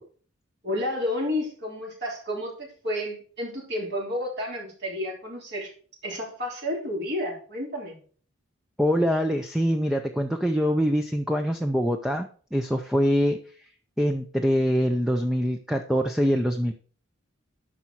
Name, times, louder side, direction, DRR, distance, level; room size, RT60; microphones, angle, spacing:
voice 1, 0.6-5.7 6.0-8.0, left 1 dB, 50° right, -2 dB, 3.4 m, -31 dB
voice 2, 8.8-13.4 14.0-16.7, equal, ahead, 5 dB, 0.5 m, -24 dB
9.9 x 5.9 x 4.6 m, 0.43 s
head